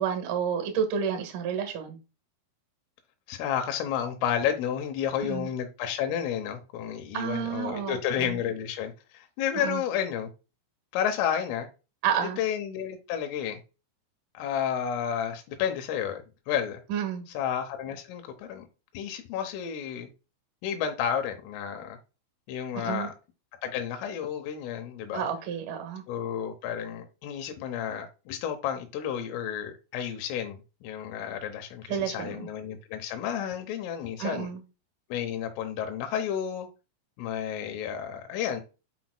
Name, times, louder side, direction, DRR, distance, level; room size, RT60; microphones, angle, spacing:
voice 1, 0.0-2.0 5.2-5.5 7.1-8.4 9.6-9.8 12.0-12.4 16.9-17.2 22.7-23.1 25.1-26.0 31.9-32.5 34.2-34.6, right 8 dB, 55° right, 2.4 m, -30 dB
voice 2, 3.3-10.3 10.9-11.7 12.4-13.6 14.4-16.8 17.4-18.7 18.9-20.1 20.6-22.0 22.5-23.1 23.6-25.3 26.1-34.5 35.1-36.7 37.2-38.6, left 9 dB, 85° left, 3.6 m, -31 dB
8.3 x 6.1 x 2.2 m
omnidirectional pair, 5.7 m